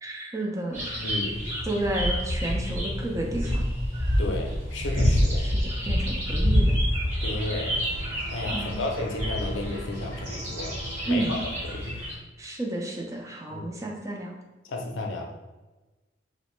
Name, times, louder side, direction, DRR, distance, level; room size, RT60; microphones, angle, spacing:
voice 1, 0.0-0.9 1.6-3.6 5.4-6.8 8.5-8.8 11.1-11.4 12.4-14.4, right 2 dB, 15° right, 0 dB, 0.4 m, -31 dB
sound 1, 0.7-12.1, equal, 35° right, 1.0 m, -27 dB
voice 2, 1.0-1.4 4.2-5.5 7.2-7.9 8.3-10.8 11.1-11.4 11.7-12.0 13.5-13.7 14.7-15.4, left 2 dB, 75° left, 2 dB, 0.5 m, -32 dB
sound 2, 7.6-11.8, right 2 dB, 65° right, 1.0 m, -43 dB
2.9 x 2.1 x 3.0 m, 1.1 s
head